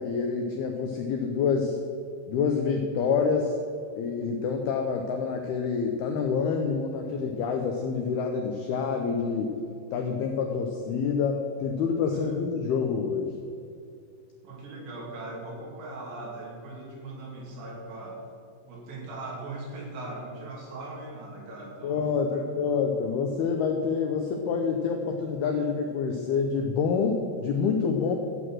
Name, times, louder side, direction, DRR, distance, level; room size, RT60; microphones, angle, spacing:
voice 1, 0.0-1.8 2.3-3.6 3.9-9.5 9.9-13.3 21.8-28.1, left 5 dB, 80° left, 3 dB, 2.2 m, -27 dB
voice 2, 14.4-18.2 18.7-22.7, right 2 dB, 70° right, -3 dB, 4.8 m, -40 dB
13.0 x 8.0 x 6.2 m, 2.4 s
omnidirectional pair, 5.5 m